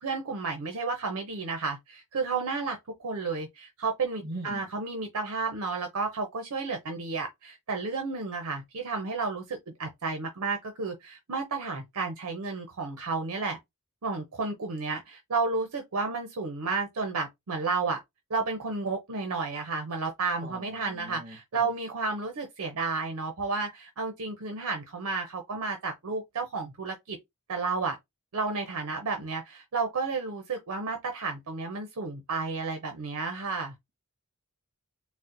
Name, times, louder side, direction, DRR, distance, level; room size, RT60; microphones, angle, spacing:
voice 1, 0.0-13.6 14.0-18.0 18.3-27.2 27.5-28.0 28.3-33.7, right 4 dB, 65° right, 0.6 m, -32 dB
voice 2, 4.2-4.6 20.4-21.7, right 1 dB, 45° right, 1.2 m, -41 dB
4.1 x 2.1 x 2.5 m
head